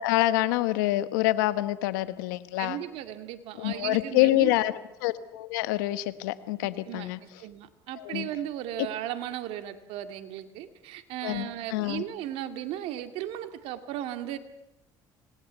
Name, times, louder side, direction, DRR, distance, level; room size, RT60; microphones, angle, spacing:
voice 1, 0.0-2.8 3.6-4.7 5.0-7.2 8.0-8.3 11.2-12.0, left 16 dB, 85° left, 13 dB, 1.2 m, -26 dB
voice 2, 2.6-4.5 6.9-14.4, right 12 dB, 75° right, 8 dB, 2.3 m, -36 dB
26.0 x 19.5 x 8.3 m, 0.94 s
supercardioid pair, 75°, 10 cm